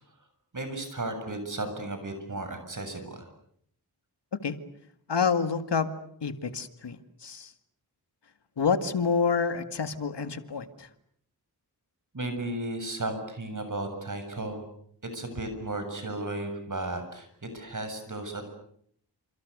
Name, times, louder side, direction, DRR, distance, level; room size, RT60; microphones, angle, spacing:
voice 1, 0.5-3.2 12.1-14.6 15.0-18.5, right 2 dB, 45° right, 7 dB, 7.3 m, -34 dB
voice 2, 5.1-5.9 6.2-7.5 8.6-10.9, left 5 dB, 75° left, 10 dB, 2.1 m, -28 dB
28.5 x 27.5 x 6.8 m, 0.67 s
wide cardioid pair, 80°, 42 cm